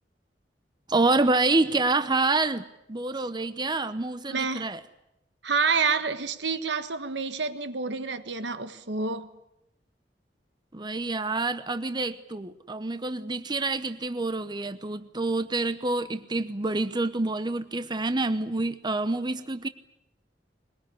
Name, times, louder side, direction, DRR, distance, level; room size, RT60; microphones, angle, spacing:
voice 1, 0.9-4.8 10.7-19.7, right 2 dB, 25° right, 0.9 m, -27 dB
voice 2, 4.3-4.7 5.4-9.3, right 5 dB, 80° right, 1.5 m, -28 dB
21.5 x 21.5 x 9.9 m
head